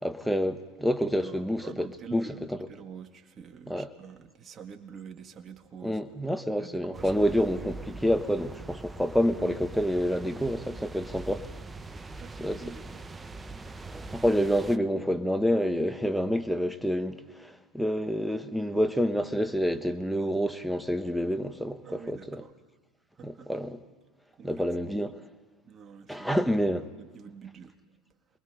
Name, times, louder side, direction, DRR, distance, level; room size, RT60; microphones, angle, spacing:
voice 1, 0.0-2.3 3.7-3.9 5.8-11.5 12.4-12.6 14.1-22.4 23.2-23.8 24.4-25.2 26.1-26.9, equal, ahead, 1.4 m, -28 dB
voice 2, 1.2-6.0 6.6-7.2 12.2-13.0 21.8-22.5 23.2-23.5 24.4-24.7 25.6-26.5 26.9-27.7, right 6 dB, 35° right, 2.0 m, -46 dB
sound 1, 6.9-14.8, right 3 dB, 15° right, 1.0 m, -42 dB
29.0 x 22.0 x 5.1 m
hypercardioid pair, 90°, 0 cm